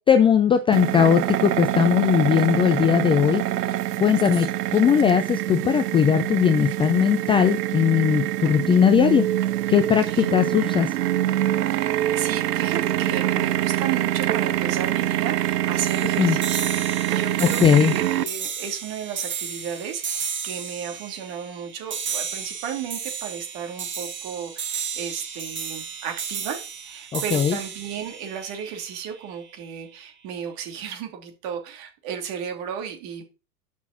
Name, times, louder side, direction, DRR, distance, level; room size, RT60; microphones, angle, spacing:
voice 1, 0.0-3.4 4.0-4.5 4.7-9.3 9.7-10.9 16.2-16.4 17.6-17.9 27.1-27.6, left 8 dB, 10° left, 9 dB, 0.4 m, -19 dB
sound 1, 0.7-18.2, right 13 dB, 80° right, 0.6 m, -25 dB
voice 2, 9.9-10.3 12.1-33.2, right 8 dB, 50° right, 4 dB, 2.8 m, -34 dB
sound 2, 15.8-29.3, right 6 dB, 25° right, 1.9 m, -33 dB
7.2 x 6.0 x 5.8 m, 0.32 s
hypercardioid pair, 100°, 47 cm